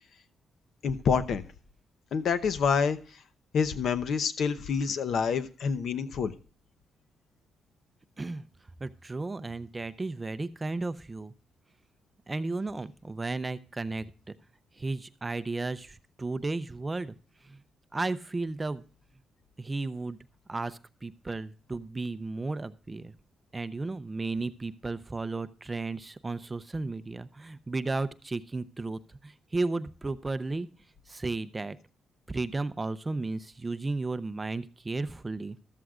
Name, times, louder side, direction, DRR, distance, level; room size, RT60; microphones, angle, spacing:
voice 1, 0.8-1.4 2.1-3.0 3.5-6.3, left 6 dB, 60° left, 12 dB, 0.8 m, -27 dB
voice 2, 8.8-11.3 12.3-14.3 14.8-17.1 17.4-17.6 17.9-18.8 19.6-20.2 20.5-23.1 23.5-30.7 31.1-31.8 32.3-35.6, right 3 dB, 20° right, 12 dB, 0.5 m, -34 dB
14.0 x 13.0 x 2.4 m, 0.38 s
cardioid pair, 140°, 0 cm